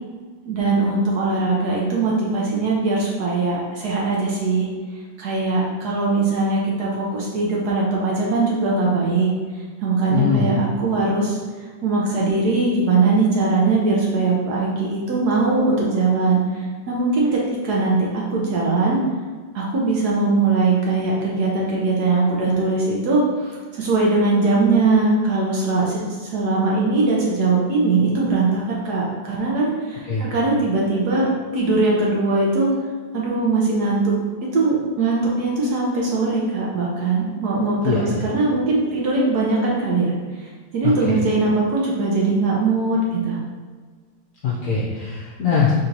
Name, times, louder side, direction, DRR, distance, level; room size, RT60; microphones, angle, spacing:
voice 1, 0.4-4.7 5.2-9.3 9.8-11.4 11.8-19.0 19.5-31.3 31.5-32.7 33.1-34.2 34.5-40.1 40.4-43.4, right 3 dB, 65° right, -4 dB, 1.1 m, -20 dB
voice 2, 10.1-10.5 30.1-30.2 37.8-38.0 40.8-41.1 44.4-45.7, left 5 dB, 65° left, -5 dB, 1.0 m, -21 dB
3.7 x 2.7 x 4.5 m, 1.5 s
omnidirectional pair, 2.1 m